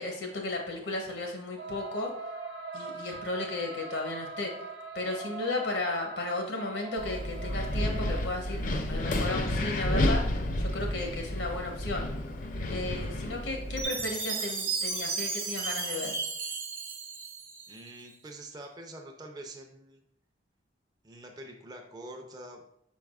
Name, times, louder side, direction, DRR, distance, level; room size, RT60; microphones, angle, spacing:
voice 1, 0.0-2.1 2.7-4.5 4.9-12.1 12.7-16.2, left 2 dB, 90° left, 2 dB, 0.9 m, -34 dB
sound 1, 1.6-8.2, right 3 dB, 80° right, 0.7 m, -41 dB
Wind, 7.0-13.8, left 1 dB, 45° left, 0.5 m, -31 dB
Chime, 13.8-18.0, right 4 dB, 45° right, 0.9 m, -34 dB
voice 2, 17.7-20.0 21.0-22.6, right 1 dB, 20° right, 2 dB, 0.5 m, -45 dB
4.6 x 4.6 x 2.4 m, 0.74 s
head